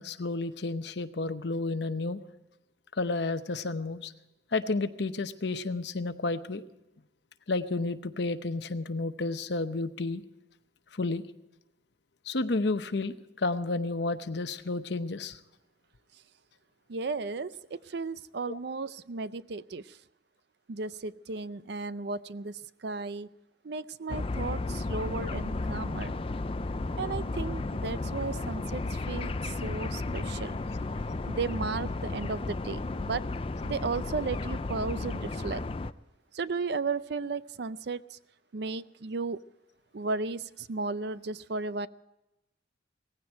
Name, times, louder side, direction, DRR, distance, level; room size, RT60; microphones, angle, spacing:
voice 1, 0.0-2.2 3.0-4.1 4.5-6.6 7.5-10.2 10.9-11.2 12.3-15.4 18.5-18.6, left 3 dB, 60° left, 11 dB, 0.8 m, -31 dB
voice 2, 16.9-20.0 20.7-23.3 23.6-26.1 27.0-30.6 31.3-33.3 33.6-35.6 36.3-38.2 38.5-39.4 39.9-41.9, right 4 dB, 60° right, 16 dB, 0.5 m, -35 dB
sound 1, 24.1-35.9, left 2 dB, 30° left, 0.4 m, -33 dB
18.0 x 15.5 x 4.5 m, 0.98 s
head